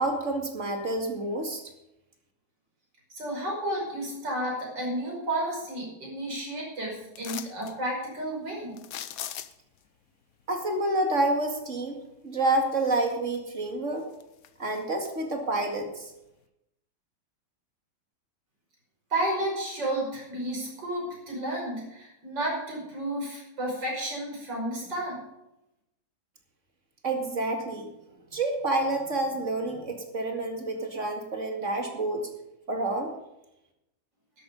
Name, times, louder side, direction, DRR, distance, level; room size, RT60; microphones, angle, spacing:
voice 1, 0.0-1.6 10.5-12.0 12.2-14.1 14.6-16.1 27.0-27.9 28.3-32.2 32.7-33.1, right 2 dB, 45° right, 3 dB, 2.5 m, -28 dB
voice 2, 3.2-8.8 19.1-25.2, right 1 dB, 85° right, -2 dB, 6.2 m, -32 dB
sound 1, 7.1-7.8 8.8-9.8 12.3-12.4 12.9-13.6 14.0-15.1 15.6-15.7, left 10 dB, 60° left, 1.1 m, -40 dB
12.5 x 11.5 x 5.4 m, 0.88 s
omnidirectional pair, 1.9 m